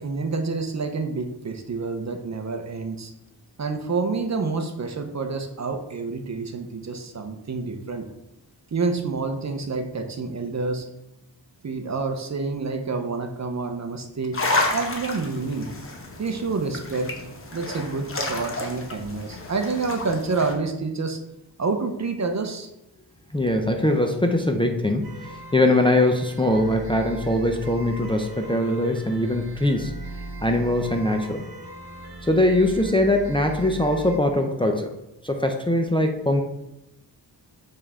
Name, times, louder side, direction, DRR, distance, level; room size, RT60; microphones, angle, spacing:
voice 1, 0.0-3.1 3.6-8.1 8.7-10.9 11.6-14.4 14.7-15.7 16.2-17.1 17.5-21.2 21.6-22.7, right 4 dB, 40° right, 6 dB, 0.8 m, -28 dB
sound 1, 14.3-20.5, left 2 dB, 30° left, 1.1 m, -30 dB
voice 2, 23.3-29.9 30.4-31.4 32.3-34.9 35.2-36.4, left 1 dB, 10° left, 3 dB, 0.5 m, -22 dB
sound 2, 25.0-34.2, right 3 dB, 60° right, 1.3 m, -39 dB
6.7 x 5.4 x 3.6 m, 0.88 s
wide cardioid pair, 135°, 43 cm